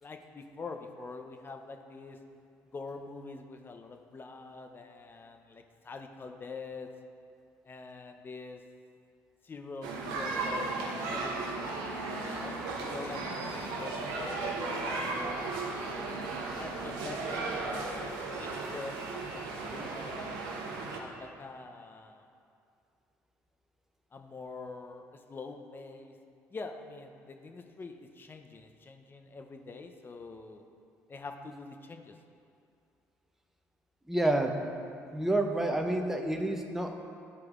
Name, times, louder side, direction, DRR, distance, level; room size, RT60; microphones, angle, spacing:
voice 1, 0.0-2.2 2.7-6.9 7.6-8.6 9.4-11.7 12.2-12.6 12.9-15.6 16.6-20.5 21.0-22.3 24.1-26.2 26.5-30.6 31.1-32.1, left 3 dB, 30° left, 5 dB, 0.6 m, -45 dB
sound 1, 9.8-21.0, right 3 dB, 80° right, 0.8 m, -35 dB
voice 2, 34.1-34.7 35.1-36.9, right 1 dB, 5° right, 3 dB, 0.7 m, -29 dB
10.5 x 4.7 x 2.4 m, 2.5 s
supercardioid pair, 65°, 7 cm